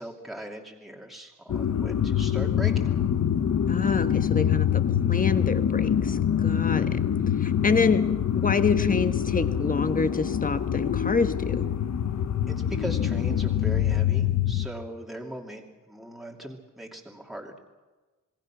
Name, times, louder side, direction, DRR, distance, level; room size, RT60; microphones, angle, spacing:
voice 1, 0.0-2.9 12.5-17.6, equal, ahead, 0 dB, 2.6 m, -39 dB
sound 1, 1.5-14.7, left 9 dB, 60° left, 1.1 m, -25 dB
voice 2, 3.7-4.8 5.1-7.0 7.4-8.0 8.4-11.7, left 4 dB, 25° left, 9 dB, 1.3 m, -27 dB
27.0 x 21.5 x 6.1 m, 1.3 s
wide cardioid pair, 165°, 32 cm